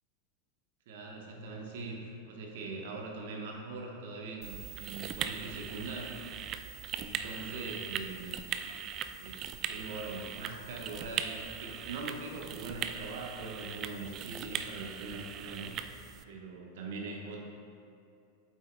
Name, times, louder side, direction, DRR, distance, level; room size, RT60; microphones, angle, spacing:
voice 1, 0.9-6.2 6.9-8.3 9.1-15.9 16.3-17.4, right 3 dB, 55° right, 0 dB, 1.1 m, -42 dB
sound 1, 4.4-16.2, right 8 dB, 35° right, 0.3 m, -40 dB
8.5 x 7.7 x 2.3 m, 2.6 s
figure-of-eight pair, 90°, 0 cm